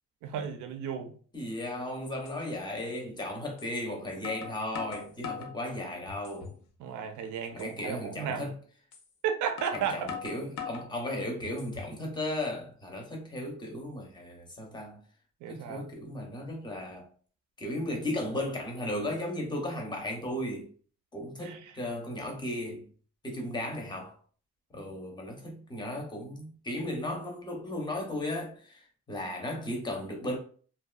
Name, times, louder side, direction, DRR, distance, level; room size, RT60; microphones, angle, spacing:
voice 1, 0.2-1.1 6.8-8.5 9.2-10.0 15.4-15.8 21.4-21.6, right 7 dB, 85° right, 0.5 m, -33 dB
voice 2, 1.3-6.5 7.5-8.6 9.7-15.0 15.5-17.1 17.6-20.7 21.1-22.9 23.2-24.2 24.7-30.4, left 1 dB, 15° left, 0.6 m, -35 dB
sound 1, 2.3-2.4 3.6-3.7 4.2-5.6 6.1-6.6 7.0-7.1 7.6-7.8 8.9-9.1 9.6-10.9 11.4-12.0, left 6 dB, 80° left, 0.6 m, -40 dB
2.6 x 2.2 x 2.2 m
cardioid pair, 145°, 29 cm